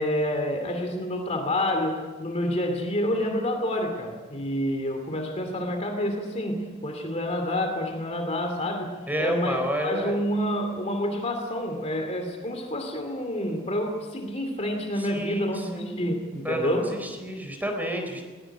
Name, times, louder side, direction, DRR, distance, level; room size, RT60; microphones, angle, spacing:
voice 1, 0.0-16.9, left 1 dB, 30° left, 5 dB, 2.6 m, -28 dB
voice 2, 9.1-10.2 15.0-16.0 16.4-18.2, right 1 dB, 10° right, 4 dB, 4.1 m, -30 dB
21.0 x 20.0 x 9.1 m, 1.4 s
head